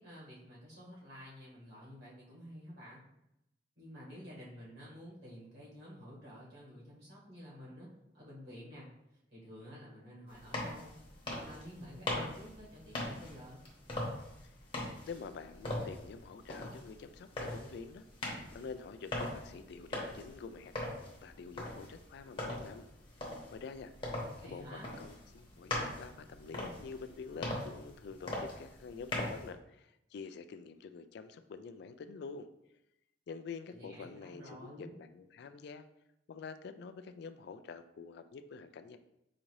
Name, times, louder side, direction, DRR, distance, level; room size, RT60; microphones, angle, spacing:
voice 1, 0.0-3.0 3.8-7.9 8.1-8.9 9.3-10.9 11.2-13.6 24.4-24.9 33.7-34.9, equal, 65° right, -6 dB, 1.5 m, -50 dB
sound 1, 10.3-29.5, left 1 dB, 30° left, 0.9 m, -41 dB
voice 2, 15.1-18.0 18.5-22.9 23.5-23.9 24.4-32.5 33.3-35.9 36.3-39.0, left 5 dB, 60° left, 10 dB, 0.3 m, -47 dB
4.9 x 2.7 x 3.0 m, 0.83 s
head